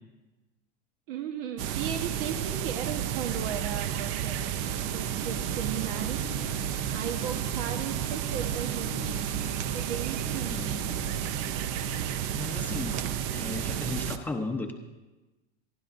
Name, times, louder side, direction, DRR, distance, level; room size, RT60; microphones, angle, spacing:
voice 1, 1.1-4.6 4.9-6.2 6.9-9.2 9.7-10.8, right 8 dB, 60° right, 5 dB, 1.3 m, -36 dB
sound 1, 1.6-14.2, right 10 dB, 40° right, 0.6 m, -31 dB
sound 2, 4.6-13.4, left 9 dB, 70° left, 1.1 m, -48 dB
voice 2, 10.5-10.9 12.3-14.7, left 2 dB, 5° left, 4 dB, 0.8 m, -35 dB
28.0 x 11.5 x 2.6 m, 1.1 s
supercardioid pair, 165°, 30 cm